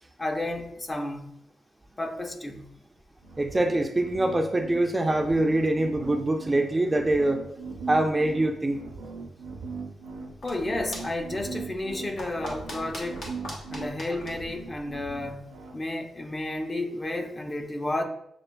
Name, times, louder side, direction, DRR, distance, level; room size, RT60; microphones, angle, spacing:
voice 1, 0.2-1.3 2.0-2.8 10.4-13.3 13.7-18.0, left 1 dB, 25° left, 5 dB, 0.6 m, -32 dB
sound 1, 3.2-15.8, right 4 dB, 85° right, 0.6 m, -40 dB
voice 2, 3.4-7.4 7.9-8.8, right 1 dB, 20° right, 5 dB, 0.4 m, -24 dB
sound 2, 10.2-15.4, left 1 dB, 75° left, 1.1 m, -43 dB
6.5 x 2.4 x 2.2 m, 0.74 s
cardioid pair, 60°, 0 cm